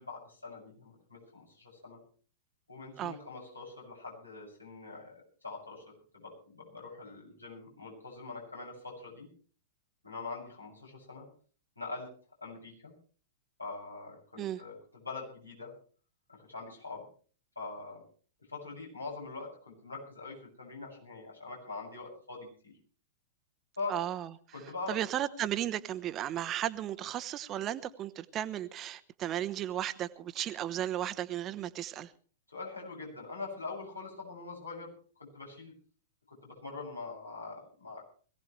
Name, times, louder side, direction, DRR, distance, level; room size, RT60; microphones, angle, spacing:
voice 1, 0.0-2.0 2.7-5.1 5.4-5.8 6.1-9.3 10.0-11.3 11.8-12.1 12.4-12.9 13.6-14.7 15.0-15.7 16.3-17.0 17.6-18.0 18.5-22.7 23.8-23.9 24.5-25.0 32.5-34.9 35.2-35.8 36.3-38.0, left 3 dB, 85° left, 7.4 m, -43 dB
voice 2, 23.9-24.3 24.9-32.1, right 12 dB, 30° right, 1.0 m, -35 dB
22.0 x 16.5 x 3.3 m
figure-of-eight pair, 100°, 0 cm